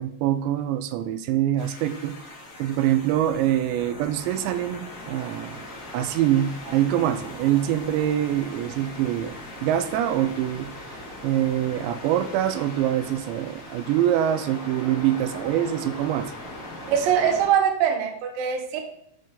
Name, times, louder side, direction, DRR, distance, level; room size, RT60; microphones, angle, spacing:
voice 1, 0.0-2.2 2.6-5.6 5.9-16.3, right 11 dB, 80° right, 12 dB, 2.7 m, -25 dB
sound 1, 1.6-17.5, left 1 dB, 50° left, 0.9 m, -40 dB
voice 2, 16.9-18.8, right 8 dB, 65° right, 3 dB, 2.5 m, -22 dB
11.5 x 7.6 x 3.8 m, 0.75 s
omnidirectional pair, 5.3 m